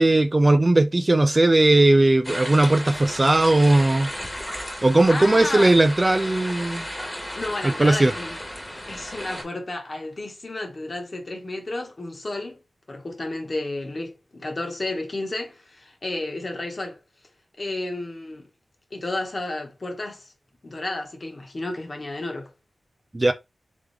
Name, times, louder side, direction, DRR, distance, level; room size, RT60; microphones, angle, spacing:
voice 1, 0.0-4.1 4.8-6.9 7.8-8.1 23.1-23.3, right 2 dB, 25° right, 0.4 m, -18 dB
sound 1, 2.2-9.4, equal, 10° left, 1.4 m, -34 dB
voice 2, 4.7-5.8 7.3-8.4 8.9-12.6 12.9-17.0 17.6-18.5 18.9-20.3 20.6-22.5, left 2 dB, 40° left, 1.4 m, -32 dB
3.6 x 3.4 x 3.3 m
wide cardioid pair, 105°, 0 cm